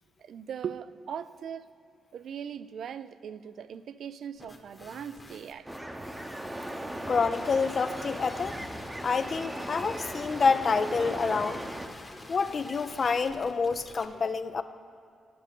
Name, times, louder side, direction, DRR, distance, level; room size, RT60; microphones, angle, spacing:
voice 1, 0.2-1.7 2.1-5.7, right 8 dB, 70° right, 14 dB, 0.3 m, -39 dB
sound 1, 4.4-14.0, left 2 dB, 25° left, 1.1 m, -47 dB
sound 2, 5.7-11.9, right 1 dB, 10° right, 0.8 m, -38 dB
voice 2, 7.1-8.6 9.0-11.6 12.3-14.6, left 5 dB, 50° left, 11 dB, 0.4 m, -27 dB
9.4 x 8.4 x 5.3 m, 2.4 s
cardioid pair, 75°, 0 cm